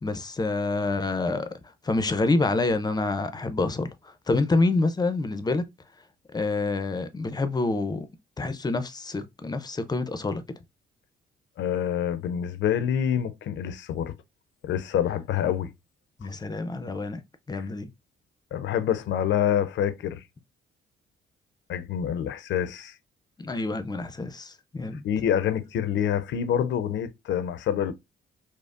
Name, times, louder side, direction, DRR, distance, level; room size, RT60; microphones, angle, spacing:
voice 1, 0.0-1.5 1.8-3.9 4.3-5.6 6.3-8.1 8.4-10.4 16.2-17.2 17.5-17.9 23.4-25.0, left 3 dB, 20° left, 0.5 m, -27 dB
voice 2, 11.6-14.1 14.6-15.7 17.5-17.7 18.5-20.2 21.7-22.9 25.0-27.9, left 9 dB, 70° left, 0.5 m, -26 dB
5.1 x 2.0 x 2.4 m
cardioid pair, 90°, 20 cm